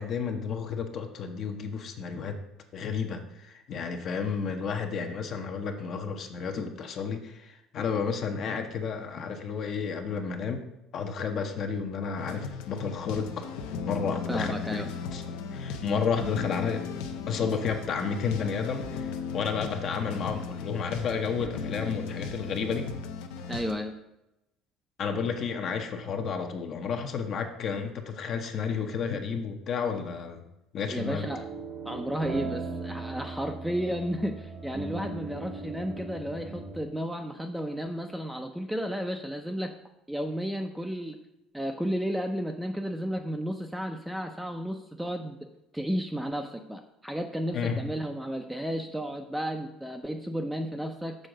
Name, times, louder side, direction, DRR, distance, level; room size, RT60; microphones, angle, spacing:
voice 1, 0.0-2.4 2.7-10.6 10.9-13.5 13.8-15.2 15.5-16.8 17.3-22.9 25.0-30.4 30.7-31.2 47.5-47.8, left 6 dB, 45° left, 5 dB, 0.8 m, -31 dB
sound 1, 12.2-23.7, left 5 dB, 85° left, 0.7 m, -36 dB
voice 2, 14.3-14.9 15.3-15.4 23.5-23.9 30.9-31.4 31.8-39.7 40.1-41.2 41.5-45.4 45.7-51.2, equal, 5° right, 4 dB, 0.5 m, -33 dB
sound 2, 31.2-36.8, right 4 dB, 50° right, 0.9 m, -38 dB
6.4 x 3.7 x 6.3 m, 0.88 s
cardioid pair, 125°, 0 cm